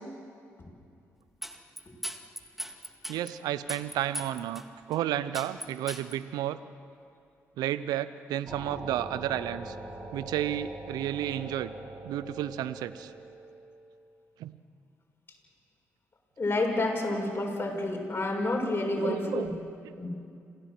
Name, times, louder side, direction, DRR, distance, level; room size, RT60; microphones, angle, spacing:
sound 1, 1.4-3.3 3.7-4.6 4.9-5.0 5.3-6.2, equal, 5° right, 2.2 m, -38 dB
voice 1, 3.1-4.6 4.9-6.6 7.6-9.8 10.1-11.7 12.0-13.1 14.4-14.6 19.0-19.5, right 12 dB, 75° right, 15 dB, 0.8 m, -32 dB
sound 2, 8.5-13.9, right 2 dB, 30° right, 6.8 m, -42 dB
voice 2, 16.4-19.6 20.0-20.1, left 2 dB, 35° left, -1 dB, 7.0 m, -29 dB
27.0 x 17.5 x 7.9 m, 2.4 s
hypercardioid pair, 45°, 7 cm